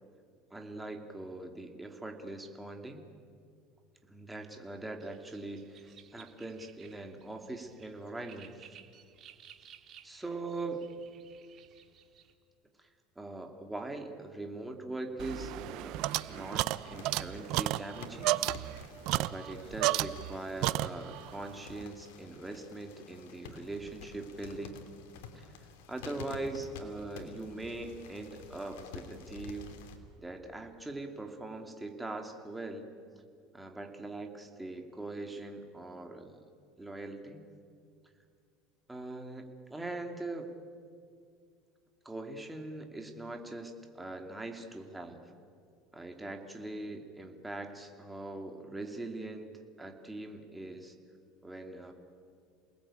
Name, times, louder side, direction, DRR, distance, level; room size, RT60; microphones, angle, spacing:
voice 1, 0.5-3.0 4.0-8.8 10.0-10.8 12.8-12.9 13.2-18.3 19.1-24.8 25.3-29.8 30.2-32.9 33.5-36.5 36.8-37.4 38.9-40.5 42.0-45.2 45.9-51.0 51.4-51.9, right 2 dB, 10° right, 4 dB, 2.7 m, -42 dB
sound 1, 5.0-12.3, right 9 dB, 40° right, 2.2 m, -57 dB
sound 2, 15.2-20.4 20.6-21.3, right 17 dB, 60° right, 0.7 m, -32 dB
sound 3, 16.0-30.0, left 6 dB, 85° left, 3.0 m, -50 dB
28.5 x 20.0 x 8.9 m, 2.2 s
supercardioid pair, 130°, 0 cm